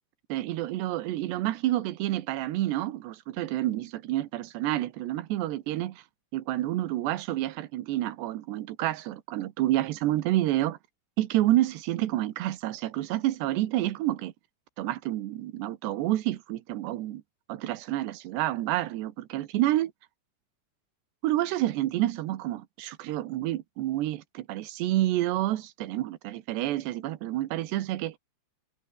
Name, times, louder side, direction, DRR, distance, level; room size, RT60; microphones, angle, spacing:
voice 1, 0.3-6.0 6.3-10.8 11.2-14.3 14.8-17.2 17.5-19.9 21.2-28.2, right 15 dB, 80° right, 3.4 m, -29 dB
omnidirectional pair, 5.0 m